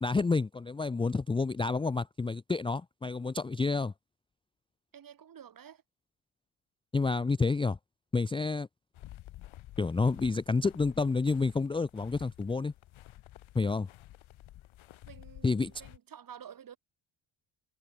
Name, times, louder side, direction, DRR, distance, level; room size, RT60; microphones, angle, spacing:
voice 1, 0.0-3.9 6.9-7.8 8.1-8.7 9.8-12.7 13.5-13.9 15.4-15.7, left 4 dB, 10° left, 0.4 m, -29 dB
voice 2, 4.9-5.8 15.1-16.8, right 8 dB, 45° right, 3.9 m, -50 dB
sound 1, 8.9-16.0, left 14 dB, 75° left, 3.0 m, -51 dB
cardioid pair, 135°, 48 cm